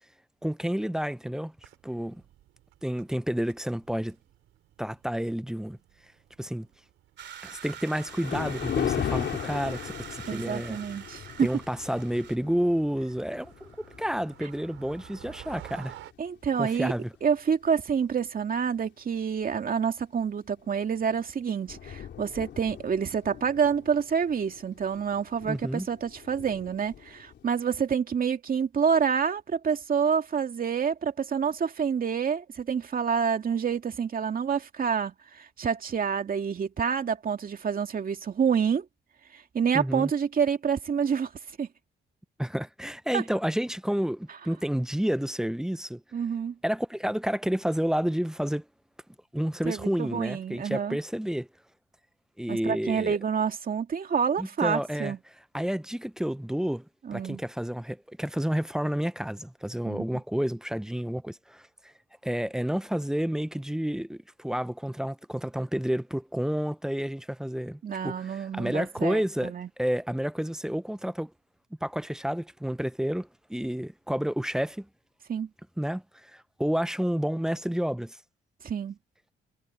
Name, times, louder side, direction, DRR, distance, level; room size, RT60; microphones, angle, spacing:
voice 1, 0.4-1.5 1.8-2.2 2.8-4.2 4.8-5.8 6.4-6.7 7.4-10.8 11.4-13.7 14.0-15.9 16.6-17.1 25.4-25.9 39.7-40.1 42.4-46.0 46.6-48.6 49.3-51.5 52.4-53.2 54.4-55.1 55.5-56.9 57.1-61.7 62.2-71.3 71.8-74.9 75.8-78.2, equal, 5° right, 0.5 m, -30 dB
sound 1, 1.6-16.1, right 13 dB, 85° right, 5.1 m, -53 dB
sound 2, 7.2-12.4, right 10 dB, 65° right, 2.6 m, -44 dB
Thunder, 7.9-16.5 17.0-17.2 17.9-18.0 18.4-18.5 20.6-20.9 21.2-21.3 21.4-27.5, left 9 dB, 65° left, 4.1 m, -38 dB
voice 2, 10.3-11.5 16.2-16.9 17.2-38.9 39.3-41.3 41.6-41.7 43.1-43.2 46.1-46.6 49.6-51.0 52.5-55.2 57.0-57.4 59.8-60.1 67.8-69.7 75.3-75.5 78.6-79.0, right 7 dB, 45° right, 2.5 m, -28 dB
cardioid pair, 90°, 20 cm